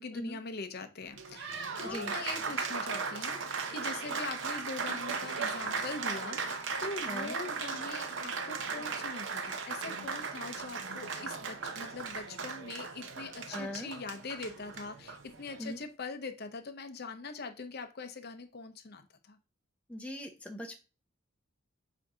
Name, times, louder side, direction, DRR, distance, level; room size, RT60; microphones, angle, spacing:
voice 1, 0.0-19.4, left 3 dB, 50° left, 8 dB, 0.7 m, -42 dB
Applause, 1.0-15.7, right 5 dB, 60° right, 0.7 m, -37 dB
voice 2, 13.5-13.9 15.6-15.8 19.9-20.8, equal, 5° left, 3 dB, 0.7 m, -40 dB
7.5 x 2.7 x 4.8 m, 0.32 s
head